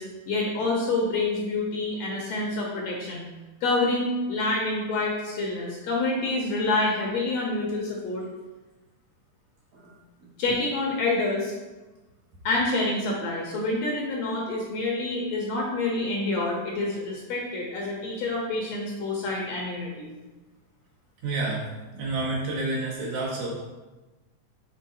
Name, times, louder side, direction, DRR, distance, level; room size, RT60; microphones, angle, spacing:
voice 1, 0.0-3.3 3.6-8.3 10.4-11.5 12.5-20.1, left 2 dB, 70° left, -2 dB, 1.8 m, -27 dB
voice 2, 21.2-21.7 21.9-23.5, right 2 dB, 75° right, -6 dB, 3.2 m, -29 dB
6.5 x 4.3 x 4.1 m, 1.2 s
omnidirectional pair, 3.6 m